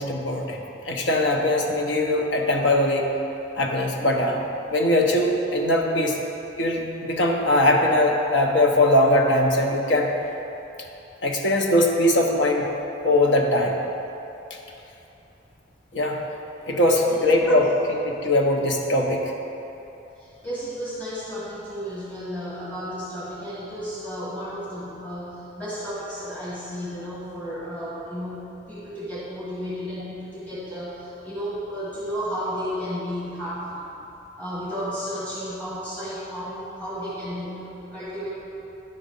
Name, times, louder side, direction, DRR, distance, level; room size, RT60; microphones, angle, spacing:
voice 1, 0.0-3.1 3.6-4.4 4.7-6.2 6.6-10.1 11.2-12.7 13.0-13.8 15.9-16.2 16.6-19.3, left 1 dB, 80° left, 1 dB, 0.9 m, -21 dB
voice 2, 20.2-33.8 34.4-38.3, equal, 10° left, -10 dB, 1.4 m, -33 dB
10.0 x 4.2 x 5.4 m, 2.9 s
head